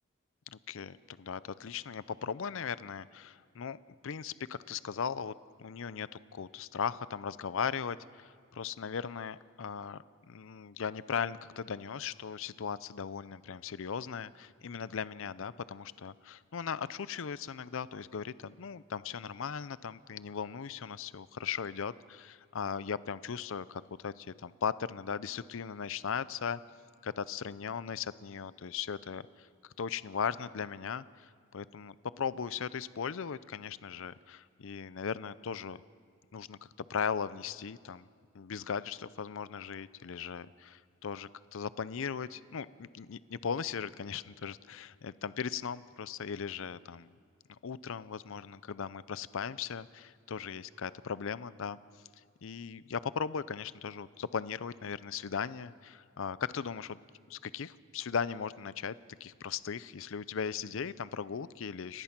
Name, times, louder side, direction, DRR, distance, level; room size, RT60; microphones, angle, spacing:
voice 1, 0.5-5.3 5.6-26.6 27.0-29.5 29.8-35.8 36.3-36.6 36.9-38.1 38.3-47.1 47.6-51.8 52.4-57.0 57.3-62.0, left 6 dB, 65° left, 17 dB, 0.5 m, -38 dB
30.0 x 16.0 x 6.0 m, 2.1 s
head